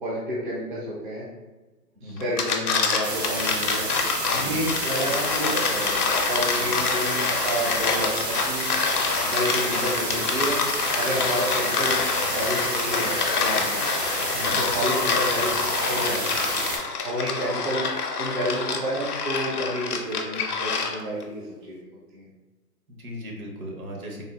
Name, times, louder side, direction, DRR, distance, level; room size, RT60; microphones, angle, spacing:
voice 1, 0.0-1.2 2.0-3.9 4.3-8.7 9.2-10.6 10.9-12.0 12.2-13.8 14.6-15.5 15.8-16.5 17.0-17.9 18.2-21.8 22.1-22.3, equal, 35° right, -7 dB, 0.5 m, -30 dB
sound 1, 2.2-21.2, left 5 dB, 65° left, 0.6 m, -26 dB
sound 2, 3.0-16.8, right 1 dB, 75° right, 1.4 m, -30 dB
voice 2, 4.3-4.7 6.6-6.8 14.3-14.6 22.9-24.2, equal, 60° right, -2 dB, 0.9 m, -37 dB
3.6 x 2.2 x 2.2 m, 1.2 s
figure-of-eight pair, 135°, 48 cm